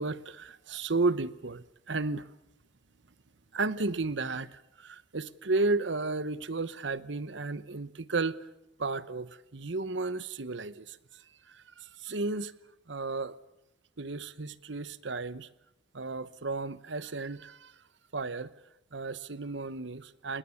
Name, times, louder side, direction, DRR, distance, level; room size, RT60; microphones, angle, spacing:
voice 1, 0.0-2.3 3.5-8.4 8.8-11.0 11.5-12.5 12.9-13.3 14.0-15.5 15.9-17.7 18.1-18.5 18.9-20.4, right 3 dB, 65° right, 16 dB, 1.0 m, -33 dB
28.5 x 20.5 x 7.2 m, 0.88 s
head